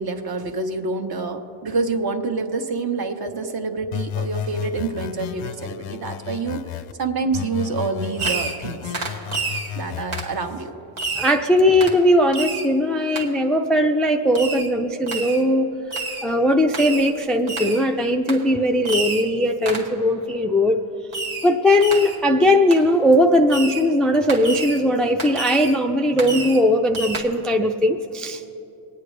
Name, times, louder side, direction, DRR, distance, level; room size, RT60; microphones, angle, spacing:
voice 1, 0.0-8.9 9.8-10.7, right 4 dB, 50° right, 5 dB, 1.2 m, -27 dB
sound 1, 3.9-6.9 7.3-10.4, left 10 dB, 80° left, 0.6 m, -32 dB
Fireworks, 8.2-8.7 8.9-9.7 10.1-10.3 11.0-11.4 11.8-12.0 12.3-12.7 13.2-13.3 14.4-14.7 15.1-15.4 15.9-16.3 16.7-17.1 17.5-17.9 18.3-18.4 18.9-19.3 19.7-19.9 21.1-21.5 21.8-22.2 22.7-22.8 23.5-23.9 24.3-24.8 25.2-25.8 26.2-26.6 26.9-27.2, right 3 dB, 85° right, 1.9 m, -29 dB
voice 2, 11.2-15.7 16.2-20.8 21.4-28.4, left 1 dB, ahead, 4 dB, 0.4 m, -19 dB
22.0 x 9.4 x 3.3 m, 3.0 s
cardioid pair, 110°, 49 cm